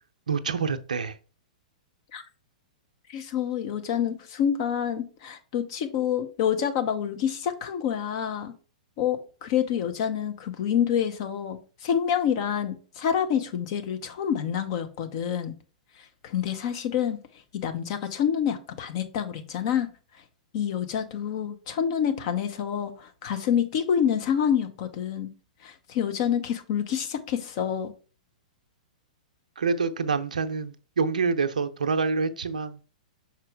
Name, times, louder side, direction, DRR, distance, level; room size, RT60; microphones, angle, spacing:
voice 1, 0.3-1.2 29.6-32.8, right 5 dB, 80° right, 10 dB, 0.6 m, -27 dB
voice 2, 3.1-8.5 9.0-15.5 16.2-17.2 17.5-19.9 20.5-25.3 25.6-27.9, left 8 dB, 50° left, 7 dB, 1.0 m, -27 dB
6.2 x 4.5 x 3.5 m, 0.36 s
hypercardioid pair, 110°, 4 cm